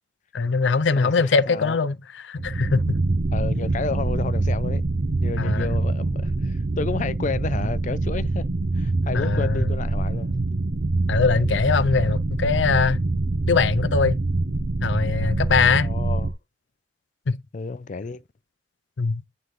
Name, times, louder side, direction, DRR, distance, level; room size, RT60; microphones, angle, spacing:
voice 1, 0.3-3.0 5.4-5.7 9.1-9.7 11.1-13.0 13.5-14.2 14.8-15.9 17.3-17.4 19.0-19.2, left 4 dB, 85° left, 0.5 m, -22 dB
voice 2, 1.0-1.8 3.3-4.8 5.2-8.5 8.7-10.4 15.8-16.4 17.5-18.2, left 4 dB, 45° left, 0.5 m, -31 dB
sound 1, 2.4-16.3, right 2 dB, 45° right, 0.5 m, -25 dB
9.6 x 3.9 x 3.1 m
head